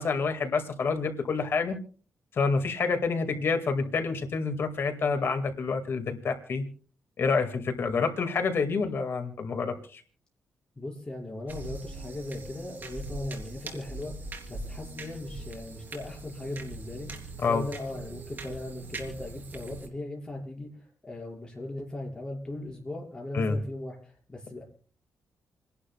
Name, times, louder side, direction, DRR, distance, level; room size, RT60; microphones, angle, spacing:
voice 1, 0.0-1.8 2.3-6.6 7.2-10.0 17.4-17.7 23.3-23.6, left 4 dB, 50° left, 6 dB, 2.0 m, -28 dB
voice 2, 10.8-14.1 14.5-24.6, left 2 dB, 15° left, -2 dB, 5.7 m, -38 dB
sound 1, 11.5-19.9, right 3 dB, 40° right, 3.5 m, -41 dB
29.0 x 11.5 x 2.3 m, 0.41 s
wide cardioid pair, 150°, 5 cm